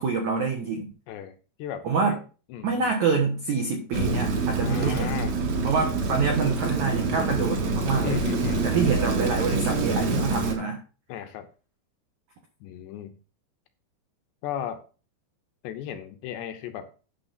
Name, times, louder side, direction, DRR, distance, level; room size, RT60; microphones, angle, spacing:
voice 1, 0.0-0.9 1.8-2.2 2.6-5.2 5.6-8.2 8.6-10.8, right 5 dB, 75° right, 2 dB, 1.7 m, -26 dB
voice 2, 1.1-2.2 2.5-2.9 4.6-5.4 8.0-8.7 11.1-11.5 12.6-13.2 14.4-14.8 15.6-16.9, left 10 dB, 75° left, 7 dB, 2.7 m, -35 dB
Rain, 3.9-10.5, right 3 dB, 60° right, 2.0 m, -26 dB
10.0 x 6.6 x 4.1 m, 0.35 s
omnidirectional pair, 5.3 m